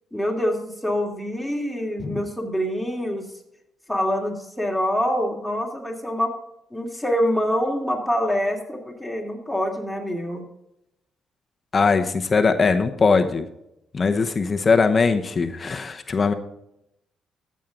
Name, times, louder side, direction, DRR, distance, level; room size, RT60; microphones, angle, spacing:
voice 1, 0.1-3.3 3.9-6.3 6.7-10.4, equal, ahead, -1 dB, 2.5 m, -25 dB
voice 2, 11.7-13.4 13.9-16.3, left 4 dB, 35° left, 7 dB, 0.9 m, -20 dB
13.5 x 7.4 x 3.8 m, 0.83 s
cardioid pair, 90°, 0 cm